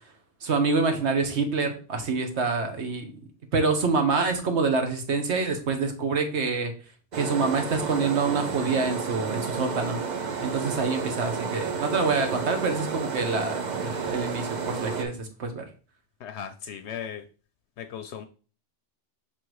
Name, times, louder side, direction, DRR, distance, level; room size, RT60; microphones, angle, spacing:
voice 1, 0.4-3.1 3.5-6.7 7.1-10.0 10.4-15.6, right 4 dB, 70° right, 5 dB, 1.3 m, -26 dB
sound 1, 7.1-15.0, right 5 dB, 45° right, 0.7 m, -31 dB
voice 2, 16.2-17.2 17.9-18.3, left 8 dB, 70° left, 9 dB, 0.8 m, -36 dB
6.0 x 3.5 x 4.7 m, 0.38 s
omnidirectional pair, 1.2 m